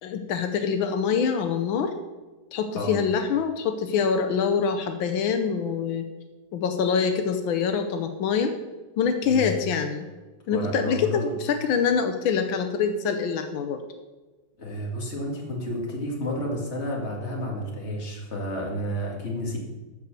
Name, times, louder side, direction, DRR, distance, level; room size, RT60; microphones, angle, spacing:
voice 1, 0.0-1.9 2.5-6.0 6.5-8.5 9.0-10.1 10.5-13.8, left 6 dB, 85° left, 7 dB, 1.5 m, -25 dB
voice 2, 2.7-3.0 9.3-9.5 10.5-11.3 14.6-19.6, left 1 dB, 35° left, -2 dB, 2.3 m, -31 dB
13.5 x 4.7 x 6.6 m, 1.2 s
omnidirectional pair, 2.2 m